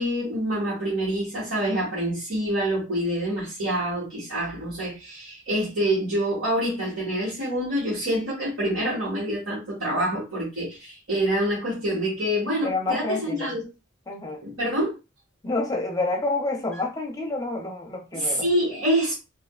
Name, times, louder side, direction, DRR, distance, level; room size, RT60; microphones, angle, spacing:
voice 1, 0.0-13.6 14.4-14.9 18.1-19.1, right 1 dB, 90° right, 1.6 m, -26 dB
voice 2, 12.6-13.6 14.1-14.4 15.4-18.5, left 2 dB, 15° left, 0.6 m, -28 dB
3.4 x 2.6 x 2.3 m
head